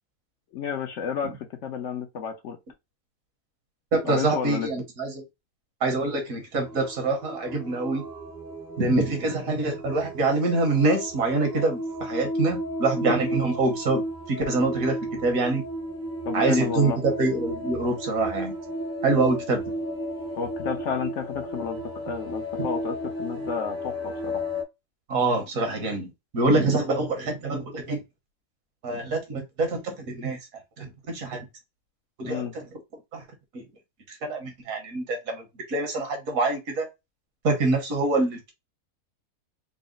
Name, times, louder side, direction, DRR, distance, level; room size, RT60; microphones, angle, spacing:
voice 1, 0.5-2.6 4.0-4.7 16.3-17.0 19.1-19.3 20.4-24.4 32.2-32.5, left 7 dB, 65° left, 0.9 m, -31 dB
voice 2, 3.9-5.2 5.8-8.0 8.8-15.6 16.3-18.5 19.0-19.6 25.1-28.0 28.8-30.4 30.8-31.5 32.2-32.4 33.1-33.2 33.5-33.6 34.1-36.9 37.4-38.5, right 3 dB, 70° right, 1.6 m, -25 dB
sound 1, 6.6-24.6, equal, 20° right, 0.6 m, -33 dB
4.0 x 2.1 x 3.8 m
omnidirectional pair, 1.5 m